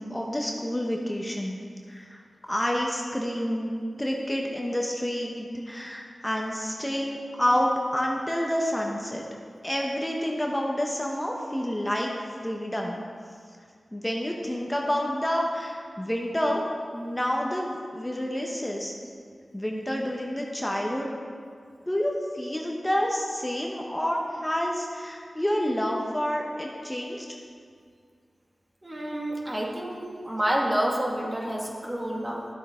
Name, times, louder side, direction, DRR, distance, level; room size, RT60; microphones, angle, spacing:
voice 1, 0.0-1.6 1.9-2.2 2.5-3.7 4.0-9.2 9.6-12.1 12.4-13.0 13.9-16.6 16.9-18.9 19.5-21.1 21.9-27.2, equal, 15° left, -1 dB, 1.1 m, -28 dB
voice 2, 28.8-32.5, right 1 dB, 25° right, -2 dB, 1.9 m, -29 dB
12.0 x 7.6 x 3.8 m, 2.1 s
cardioid pair, 40°, 0 cm